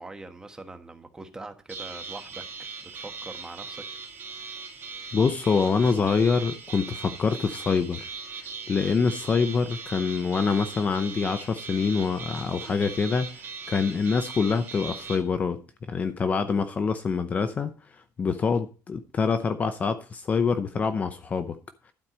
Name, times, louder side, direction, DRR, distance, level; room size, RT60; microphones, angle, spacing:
voice 1, 0.0-3.8, right 2 dB, 10° right, 1.2 m, -43 dB
sound 1, 1.7-15.2, right 5 dB, 40° right, 2.3 m, -40 dB
voice 2, 5.1-8.1 8.7-13.3 13.7-15.6 15.9-17.7 18.2-21.6, left 5 dB, 25° left, 0.6 m, -25 dB
12.0 x 4.7 x 7.4 m
cardioid pair, 155°, 6 cm